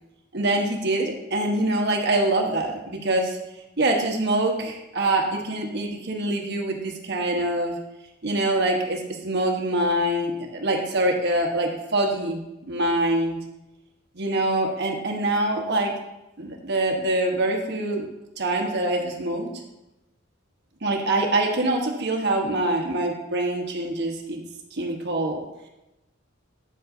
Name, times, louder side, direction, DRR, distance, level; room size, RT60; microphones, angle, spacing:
voice 1, 0.3-3.4 3.8-7.8 8.2-13.4 14.1-15.9 16.4-18.0 18.4-19.5 20.8-24.4 24.7-25.4, right 1 dB, 55° right, 1 dB, 1.1 m, -24 dB
8.7 x 7.6 x 2.6 m, 0.95 s
head